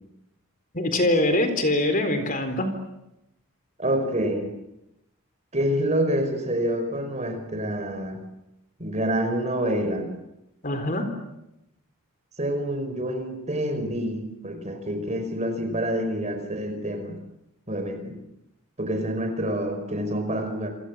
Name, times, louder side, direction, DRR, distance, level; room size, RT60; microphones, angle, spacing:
voice 1, 0.7-2.7 10.6-11.1, left 1 dB, 40° left, 8 dB, 4.0 m, -23 dB
voice 2, 3.8-4.5 5.5-8.2 8.8-10.1 12.4-17.2 17.7-18.1 18.8-20.7, right 1 dB, 30° right, 7 dB, 5.0 m, -27 dB
28.0 x 27.5 x 7.5 m, 0.87 s
head